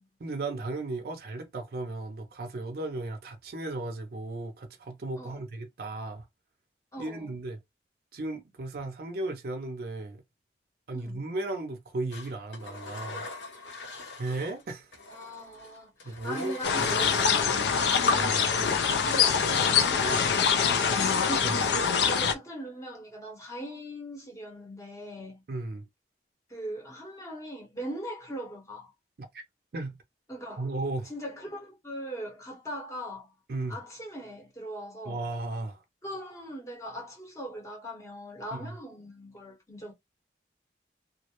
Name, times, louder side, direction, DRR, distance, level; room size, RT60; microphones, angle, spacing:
voice 1, 0.2-6.3 7.0-7.6 8.1-10.2 10.9-13.3 14.2-15.0 16.0-17.6 18.1-18.8 21.4-21.5 25.5-25.9 29.3-29.4 29.7-30.0 30.6-31.1 33.5-33.8 35.0-35.8 38.5-38.7, right 2 dB, 55° right, 0.4 m, -35 dB
voice 2, 6.9-7.3 10.9-11.3 15.1-17.7 19.1-25.4 26.5-28.9 30.3-30.7 31.0-33.3 33.7-35.2 36.0-39.9, equal, 15° left, 0.8 m, -40 dB
Engine, 12.1-14.6 14.9-19.3, left 2 dB, 90° left, 0.9 m, -43 dB
sound 1, 16.6-22.3, left 6 dB, 75° left, 0.4 m, -24 dB
2.3 x 2.0 x 2.8 m
head